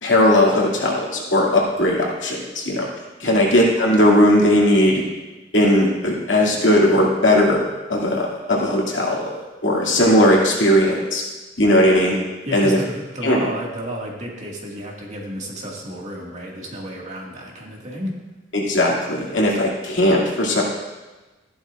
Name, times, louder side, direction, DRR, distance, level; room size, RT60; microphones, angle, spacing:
voice 1, 0.0-2.9 3.2-5.0 5.5-7.6 7.9-11.2 11.6-12.2 12.5-12.8 13.2-13.5 18.5-20.6, left 1 dB, 70° left, -3 dB, 2.5 m, -18 dB
voice 2, 12.5-18.2, equal, 40° right, -2 dB, 2.0 m, -32 dB
13.5 x 11.5 x 2.5 m, 1.2 s
head